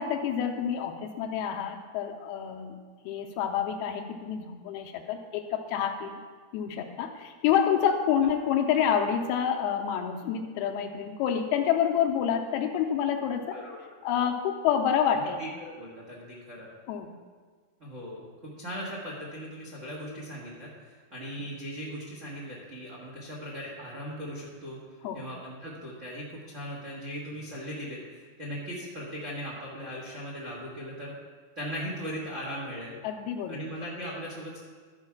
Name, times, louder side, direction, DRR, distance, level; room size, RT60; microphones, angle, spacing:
voice 1, 0.0-2.8 3.1-6.2 6.5-13.6 14.0-15.4 16.9-17.1 25.0-25.2 33.0-33.6, left 8 dB, 85° left, 4 dB, 2.6 m, -28 dB
voice 2, 15.4-16.7 17.8-24.8 25.1-31.1 31.5-33.0 33.5-34.6, equal, 85° right, -5 dB, 0.6 m, -39 dB
13.0 x 4.9 x 5.9 m, 1.5 s
omnidirectional pair, 4.7 m